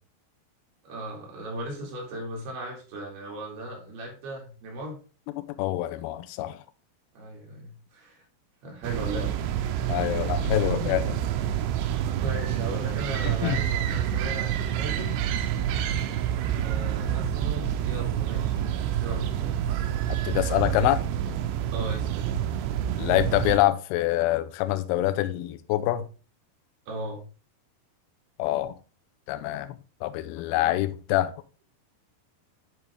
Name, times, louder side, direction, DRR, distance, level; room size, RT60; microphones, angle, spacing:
voice 1, 0.8-5.0 7.1-8.3 8.6-10.4 10.6-11.0 12.2-15.2 16.6-19.6 20.8-20.9 21.7-22.4 26.9-27.2, right 1 dB, 70° right, 4.3 m, -37 dB
voice 2, 5.4-6.6 9.9-11.0 13.2-13.6 20.1-21.0 23.0-26.1 28.4-28.8 29.3-31.3, left 14 dB, 85° left, 2.4 m, -26 dB
sound 1, 8.8-23.6, right 10 dB, 85° right, 2.8 m, -28 dB
10.5 x 3.7 x 3.5 m
omnidirectional pair, 4.9 m